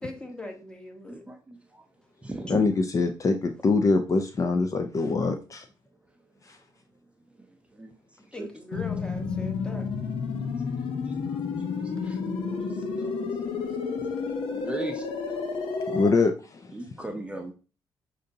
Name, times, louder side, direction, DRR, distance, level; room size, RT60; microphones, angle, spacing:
voice 1, 0.0-1.2 8.3-9.9 12.9-13.0 13.4-14.0 14.6-14.7, left 1 dB, 10° left, 1.1 m, -41 dB
voice 2, 1.1-1.9 2.2-2.8 6.1-6.2 7.3-8.5 10.3-10.5 10.8-13.7 14.0-15.8 16.7-17.5, right 2 dB, 15° right, 0.5 m, -41 dB
voice 3, 2.5-5.6 6.5-6.6 15.9-16.7, left 3 dB, 35° left, 0.4 m, -24 dB
sound 1, 8.7-16.1, left 5 dB, 80° left, 0.8 m, -31 dB
6.3 x 2.6 x 2.7 m
cardioid pair, 85°, 9 cm